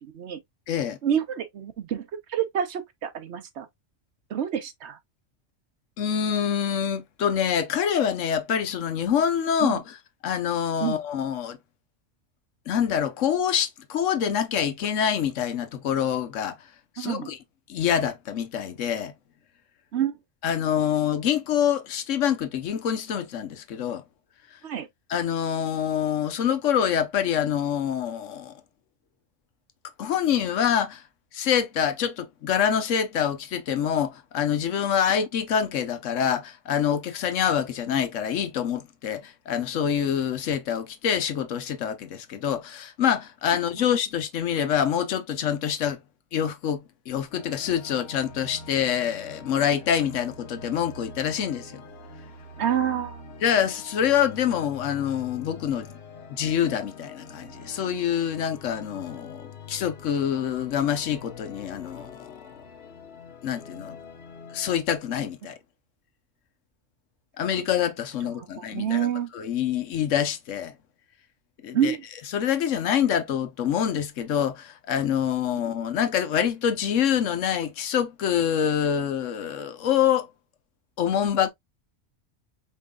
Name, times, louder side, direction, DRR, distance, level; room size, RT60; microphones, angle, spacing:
voice 1, 0.0-0.4 1.0-3.7 4.3-5.0 9.6-9.8 10.8-11.0 17.0-17.3 19.9-20.1 24.6-24.9 52.6-53.2 68.4-69.3 71.7-72.0 75.5-75.6, right 9 dB, 65° right, 1.0 m, -28 dB
voice 2, 0.7-1.0 6.0-10.0 10.2-11.6 12.7-16.6 17.0-17.4 17.7-19.1 20.4-24.0 25.1-28.5 30.0-31.0 31.3-46.0 46.3-51.8 53.4-55.9 56.3-62.3 63.4-64.0 64.5-65.6 67.4-69.1 69.3-70.7 71.6-72.0 72.3-80.3 81.0-81.5, left 9 dB, 80° left, 1.1 m, -26 dB
sound 1, 47.3-64.8, left 4 dB, 55° left, 1.1 m, -44 dB
4.6 x 3.7 x 2.3 m
omnidirectional pair, 1.3 m